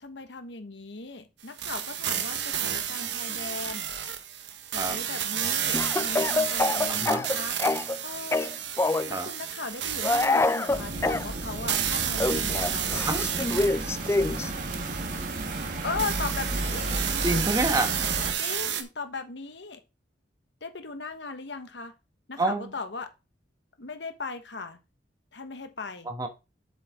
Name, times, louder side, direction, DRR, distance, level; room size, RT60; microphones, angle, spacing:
voice 1, 0.0-3.9 4.7-7.6 8.0-8.5 9.1-13.5 15.8-17.0 18.4-19.8 20.6-21.9 22.3-23.1 23.8-24.8 25.3-26.1, left 4 dB, 70° left, 8 dB, 1.2 m, -38 dB
sound 1, 1.6-18.8, right 9 dB, 70° right, 1.1 m, -31 dB
Speech / Cough, 5.7-8.0 8.3-9.1 10.0-11.2 12.2-14.5, left 2 dB, 15° left, 0.3 m, -26 dB
voice 2, 6.9-7.3 9.1-9.3 13.1-13.2 17.2-17.9 22.4-22.7 26.1-26.3, right 2 dB, 20° right, 6 dB, 1.2 m, -27 dB
sound 2, 10.7-18.3, right 1 dB, 50° right, 1.4 m, -33 dB
8.1 x 6.6 x 3.6 m, 0.27 s
head